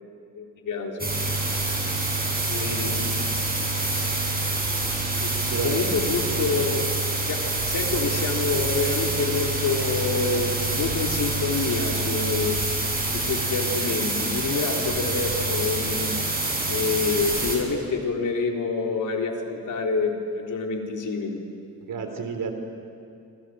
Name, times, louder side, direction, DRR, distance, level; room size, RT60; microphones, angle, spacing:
voice 1, 0.4-1.1 2.5-3.1 5.2-6.8 7.3-12.6 13.1-16.1 16.7-21.4, left 4 dB, 70° left, 1 dB, 4.0 m, -27 dB
sound 1, 1.0-17.6, right 2 dB, 30° right, 7.5 m, -26 dB
voice 2, 5.3-6.0 6.3-6.6 21.9-22.6, right 5 dB, 85° right, 6 dB, 3.7 m, -32 dB
27.5 x 26.5 x 7.9 m, 2.5 s
wide cardioid pair, 105°, 32 cm